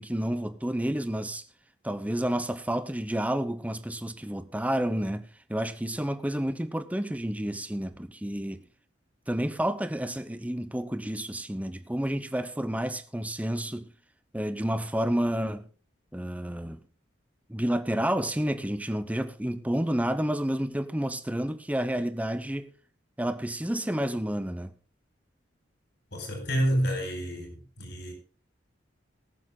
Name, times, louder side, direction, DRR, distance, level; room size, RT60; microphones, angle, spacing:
voice 1, 0.0-1.4 1.8-8.6 9.3-13.9 14.3-15.6 16.1-16.8 17.5-22.7 23.2-24.7, right 1 dB, 10° right, 0.8 m, -30 dB
voice 2, 26.1-28.1, equal, 65° left, 4.7 m, -29 dB
19.5 x 7.1 x 3.8 m
head